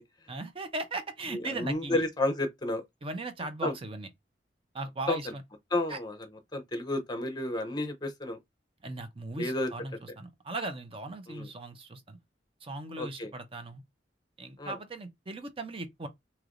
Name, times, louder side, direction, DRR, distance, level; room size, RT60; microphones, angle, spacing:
voice 1, 0.3-2.0 3.0-4.1 4.7-5.4 5.9-6.0 8.8-12.2 12.6-13.8 14.4-16.1, right 2 dB, 30° right, 0.6 m, -38 dB
voice 2, 1.3-2.8 3.6-3.7 5.1-5.2 5.7-6.2 6.5-8.4 9.4-9.7 11.3-11.5 13.0-13.3 14.6-14.8, left 1 dB, 25° left, 0.7 m, -31 dB
3.2 x 2.9 x 2.5 m
head